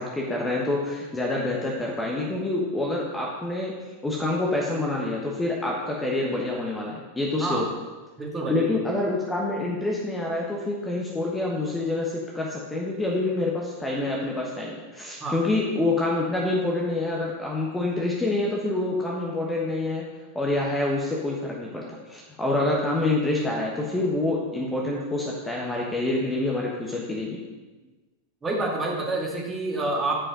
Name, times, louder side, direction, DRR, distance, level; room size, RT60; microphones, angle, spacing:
voice 1, 0.0-7.7 8.5-20.0 20.3-27.4, left 2 dB, 10° left, -3 dB, 1.2 m, -27 dB
voice 2, 8.2-8.8 15.2-15.4 28.4-30.2, right 2 dB, 15° right, -2 dB, 2.0 m, -28 dB
9.9 x 5.5 x 4.9 m, 1.2 s
figure-of-eight pair, 90°, 0 cm